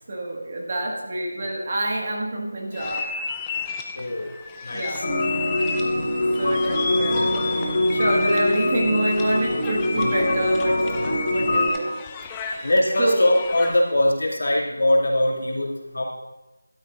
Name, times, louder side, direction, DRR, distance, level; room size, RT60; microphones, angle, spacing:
voice 1, 0.1-3.0 4.7-5.1 6.4-10.8 11.3-11.9 12.5-12.7 13.0-13.2, right 1 dB, 30° right, -1 dB, 1.8 m, -27 dB
sound 1, 2.7-13.9, left 5 dB, 10° left, 0.4 m, -33 dB
voice 2, 3.9-4.3 4.6-5.0 11.2-11.6 12.6-16.0, left 1 dB, 65° left, -3 dB, 2.6 m, -22 dB
sound 2, 5.0-11.7, left 1 dB, 40° left, 3.7 m, -23 dB
14.5 x 12.0 x 2.6 m, 1.1 s
figure-of-eight pair, 175°, 0 cm